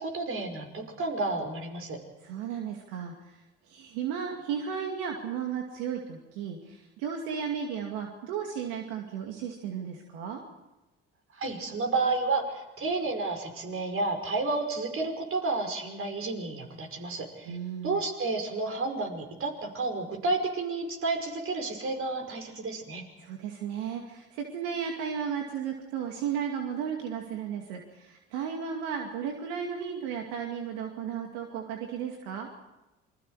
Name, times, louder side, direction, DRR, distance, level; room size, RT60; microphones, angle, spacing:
voice 1, 0.0-2.0 11.3-17.6 17.8-23.0, right 3 dB, 45° right, 4 dB, 5.5 m, -31 dB
voice 2, 2.2-10.4 17.4-18.0 23.2-32.5, right 7 dB, 80° right, 2 dB, 2.4 m, -34 dB
27.5 x 22.5 x 4.9 m, 1.0 s
hypercardioid pair, 65°, 29 cm